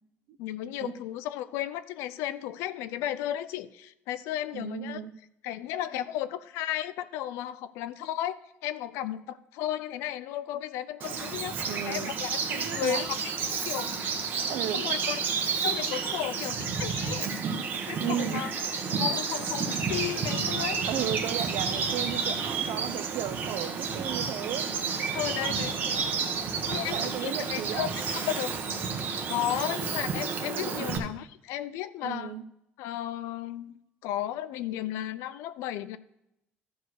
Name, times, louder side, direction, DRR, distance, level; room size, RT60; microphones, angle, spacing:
voice 1, 0.4-5.0 5.4-8.4 8.6-14.2 14.7-17.3 17.9-18.5 19.0-20.8 25.1-26.0 26.7-28.5 29.3-32.3 32.8-36.0, left 12 dB, 85° left, 14 dB, 0.6 m, -34 dB
voice 2, 4.5-5.1 11.7-12.1 12.5-13.1 14.5-14.8 15.6-15.7 16.1-16.2 17.9-18.4 20.9-24.7 26.4-27.9 30.5-30.9 32.0-32.4, right 11 dB, 75° right, 12 dB, 0.7 m, -35 dB
Bird vocalization bird call bird song, 11.0-31.0, right 5 dB, 45° right, 1.2 m, -31 dB
13.5 x 4.9 x 4.8 m, 0.82 s
cardioid pair, 140°, 4 cm